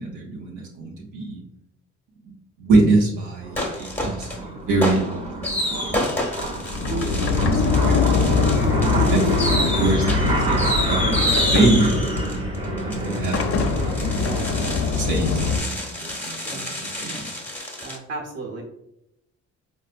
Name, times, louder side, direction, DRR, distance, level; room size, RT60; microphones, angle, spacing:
voice 1, 0.0-1.4 2.2-2.3 2.6-6.3 7.0-12.0 12.8-17.3, right 2 dB, 90° right, -2 dB, 0.8 m, -25 dB
sound 1, 3.4-15.5, right 1 dB, 20° right, 0.8 m, -29 dB
sound 2, 3.6-4.4 4.8-18.0, left 1 dB, 5° left, 0.8 m, -29 dB
Sliding door, 6.4-15.6, left 4 dB, 50° left, 0.5 m, -23 dB
voice 2, 6.9-7.2 9.5-9.8 16.4-16.7 17.8-18.6, right 3 dB, 55° right, -1 dB, 1.0 m, -33 dB
4.3 x 2.1 x 2.4 m, 0.81 s
cardioid pair, 90°, 30 cm